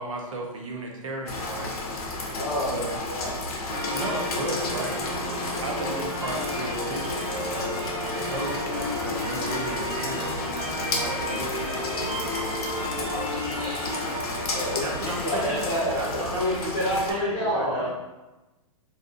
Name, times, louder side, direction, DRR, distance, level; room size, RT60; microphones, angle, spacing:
voice 1, 0.0-1.7 2.6-3.0 3.9-5.0 5.6-7.8 8.1-11.9 14.8-17.9, right 2 dB, 60° right, 1 dB, 0.6 m, -35 dB
Rain, 1.3-17.1, left 2 dB, 85° left, 0.6 m, -32 dB
voice 2, 2.3-3.4 4.6-4.7 13.0-13.1 14.5-17.9, equal, 30° left, -9 dB, 0.9 m, -28 dB
sound 1, 3.7-15.6, equal, 25° right, 0.9 m, -32 dB
voice 3, 7.7-8.3 9.0-9.5 10.0-14.8, equal, 85° right, -8 dB, 1.3 m, -43 dB
2.7 x 2.4 x 2.4 m, 1.1 s
hypercardioid pair, 175°, 19 cm